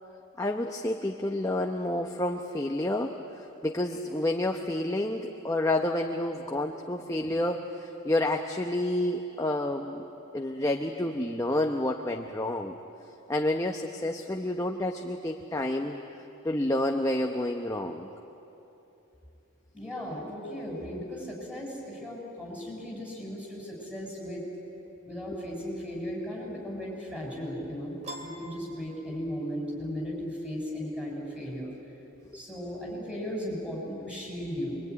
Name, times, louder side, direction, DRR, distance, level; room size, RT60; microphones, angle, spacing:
voice 1, 0.4-10.0 10.3-12.8 13.3-16.0 16.4-18.1 32.3-32.4, left 1 dB, 15° left, 2 dB, 0.8 m, -29 dB
voice 2, 19.7-24.5 25.0-31.7 32.3-34.8, equal, 5° right, -4 dB, 6.8 m, -36 dB
Piano, 28.0-29.6, right 1 dB, 30° right, 3.1 m, -44 dB
25.5 x 23.0 x 9.7 m, 3.0 s
head